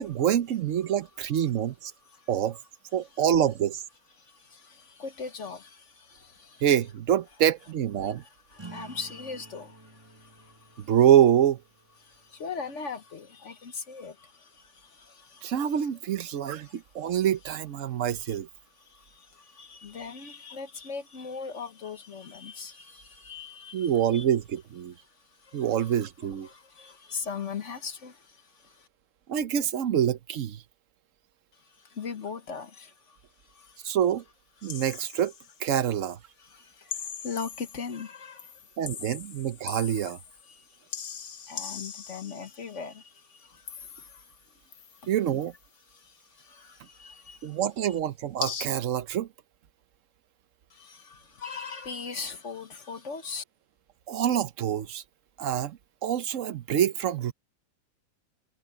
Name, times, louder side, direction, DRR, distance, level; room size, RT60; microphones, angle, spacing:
voice 1, 0.0-1.9 2.3-2.6 2.9-3.8 6.6-8.2 10.8-11.6 15.4-18.5 23.7-24.9 25.5-26.5 29.3-30.6 33.8-34.2 34.6-35.3 35.6-36.2 38.8-40.2 45.1-45.5 47.4-49.3 54.1-55.0 55.4-57.3, right 10 dB, 60° right, 1.0 m, -26 dB
voice 2, 4.2-6.6 8.0-10.9 12.0-15.9 16.6-17.2 17.8-18.4 18.8-24.2 25.0-28.9 31.5-34.0 34.6-34.8 36.4-38.7 40.4-45.1 45.9-47.9 50.7-53.4, left 5 dB, 50° left, 1.3 m, -41 dB
sound 1, 8.5-13.6, right 3 dB, 15° right, 1.6 m, -51 dB
sound 2, 34.6-35.6 36.9-38.1 38.4-40.5 40.9-42.7 43.7-44.4 44.7-45.6 48.4-48.7, left 7 dB, 75° left, 2.1 m, -40 dB
omnidirectional pair, 1.8 m